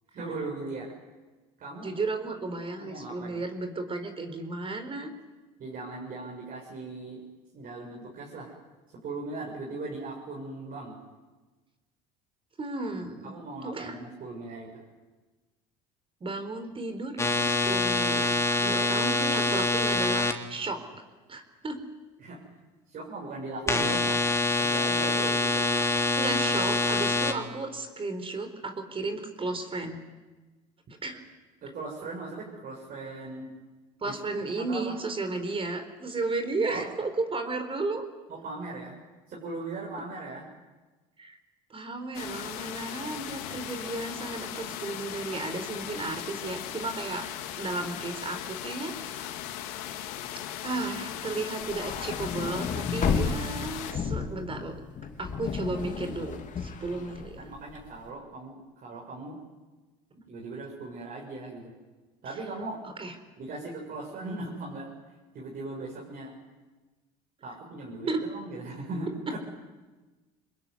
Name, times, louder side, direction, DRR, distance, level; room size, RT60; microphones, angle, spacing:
voice 1, 0.1-0.9 1.6-1.9 2.8-3.4 5.6-7.2 7.5-8.6 9.0-11.0 13.2-14.8 18.6-19.1 22.2-22.4 22.9-24.2 24.6-25.8 31.6-33.6 34.0-34.1 34.6-34.9 36.7-36.9 38.3-39.0 39.3-40.4 56.9-58.5 58.8-59.4 60.3-61.7 62.2-62.8 63.4-64.9 65.3-66.3 67.4-69.4, right 3 dB, 50° right, -2 dB, 7.2 m, -39 dB
voice 2, 1.8-5.1 12.6-13.3 13.6-14.0 16.2-21.0 21.3-21.8 26.2-30.0 31.0-31.2 34.0-38.0 41.2-41.4 41.7-47.3 47.6-49.3 50.6-54.8 55.2-57.4 62.8-63.1 68.1-68.2 69.3-69.4, right 3 dB, 30° right, 8 dB, 4.3 m, -34 dB
sound 1, 17.2-20.3 23.7-27.3, left 3 dB, 15° left, 3.3 m, -25 dB
sound 2, 42.1-53.9, left 11 dB, 85° left, 2.9 m, -38 dB
sound 3, 51.6-57.9, left 6 dB, 45° left, 3.4 m, -32 dB
26.5 x 21.0 x 9.6 m, 1.2 s
supercardioid pair, 85°, 19 cm